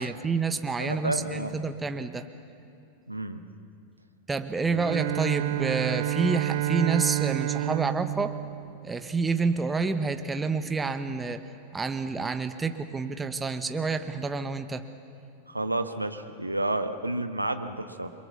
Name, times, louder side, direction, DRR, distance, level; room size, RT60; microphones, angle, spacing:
voice 1, 0.0-2.2 4.3-8.4 8.8-11.4 11.7-14.8, right 4 dB, 10° right, 8 dB, 1.1 m, -28 dB
voice 2, 0.8-1.6 3.1-3.4 15.5-18.1, right 2 dB, 85° right, 7 dB, 1.4 m, -30 dB
Bowed string instrument, 4.7-9.3, right 16 dB, 55° right, 0.9 m, -29 dB
29.5 x 23.5 x 7.1 m, 2.6 s
figure-of-eight pair, 90°, 0 cm